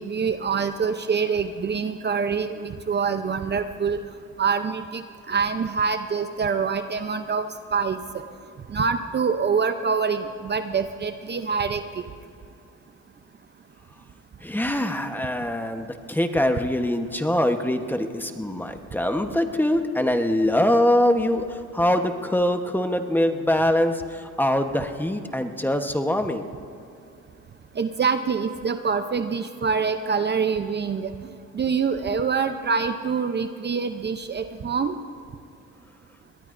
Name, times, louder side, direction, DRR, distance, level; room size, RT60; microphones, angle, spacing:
voice 1, 0.0-4.0 4.4-8.0 8.7-12.0 27.8-31.1 31.5-35.0, right 5 dB, 35° right, 8 dB, 0.7 m, -25 dB
voice 2, 14.4-26.5, left 1 dB, 5° left, 6 dB, 1.1 m, -23 dB
22.5 x 18.5 x 2.6 m, 2.6 s
cardioid pair, 90°, 30 cm